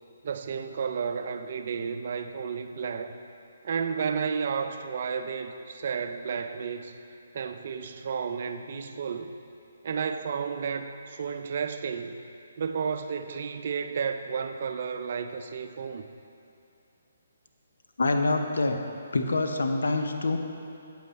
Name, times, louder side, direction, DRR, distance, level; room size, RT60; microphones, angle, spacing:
voice 1, 0.2-3.2 3.6-7.0 7.3-9.3 9.8-12.2 12.6-16.1, right 6 dB, 55° right, 8 dB, 0.5 m, -32 dB
voice 2, 18.0-18.8 19.1-20.4, left 2 dB, 75° left, 5 dB, 0.8 m, -25 dB
8.3 x 8.1 x 4.1 m, 2.7 s
hypercardioid pair, 145°, 0 cm